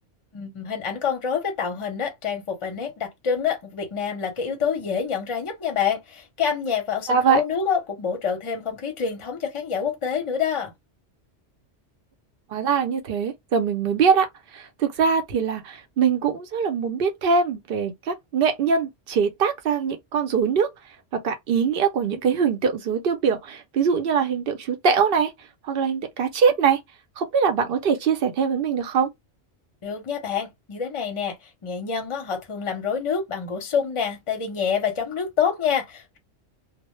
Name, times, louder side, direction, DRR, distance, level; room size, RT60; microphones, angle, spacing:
voice 1, 0.3-10.7 29.8-31.4 31.6-36.2, left 7 dB, 35° left, 0.6 m, -27 dB
voice 2, 7.1-7.4 12.5-14.3 14.5-20.7 21.1-25.3 25.7-26.8 27.2-29.1, right 6 dB, 60° right, 0.7 m, -22 dB
2.1 x 2.0 x 2.9 m
omnidirectional pair, 1.2 m